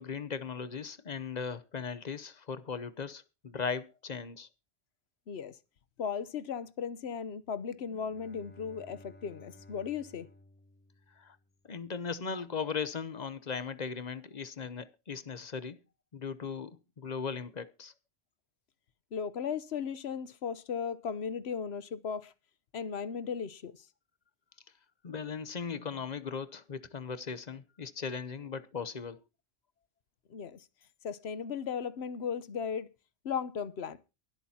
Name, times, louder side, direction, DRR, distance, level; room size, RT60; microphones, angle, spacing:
voice 1, 0.0-4.5 11.2-11.4 11.7-15.8 16.1-17.9 25.0-29.2, left 5 dB, 45° left, 0.8 m, -38 dB
voice 2, 6.0-10.3 19.1-22.3 22.7-23.7 30.3-30.6 31.0-32.9 33.2-34.0, left 7 dB, 90° left, 1.1 m, -36 dB
Bowed string instrument, 7.7-11.8, left 1 dB, 15° left, 0.6 m, -56 dB
23.0 x 8.5 x 2.8 m
omnidirectional pair, 1.0 m